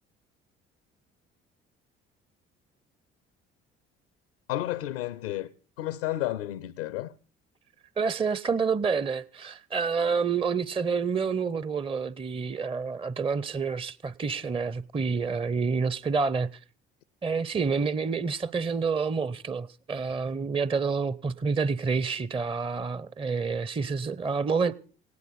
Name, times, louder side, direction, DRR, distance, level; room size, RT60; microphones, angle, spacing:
voice 1, 4.5-5.5 5.8-7.1, left 14 dB, 70° left, 0.7 m, -31 dB
voice 2, 8.0-16.6 17.2-24.7, right 5 dB, 15° right, 0.7 m, -28 dB
19.0 x 16.5 x 4.1 m
figure-of-eight pair, 50°, 32 cm